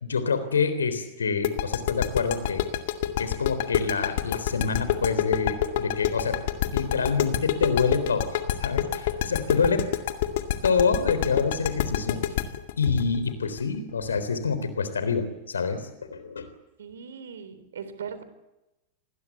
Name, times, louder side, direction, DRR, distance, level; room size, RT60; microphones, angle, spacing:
voice 1, 0.0-2.6 3.2-6.4 6.7-9.8 10.6-12.2 12.8-16.5, left 5 dB, 70° left, 11 dB, 3.7 m, -26 dB
sound 1, 1.4-14.2, left 13 dB, 55° left, 2.1 m, -27 dB
voice 2, 16.8-18.2, right 7 dB, 65° right, 12 dB, 3.5 m, -39 dB
27.0 x 20.5 x 8.3 m, 0.97 s
figure-of-eight pair, 90°, 0 cm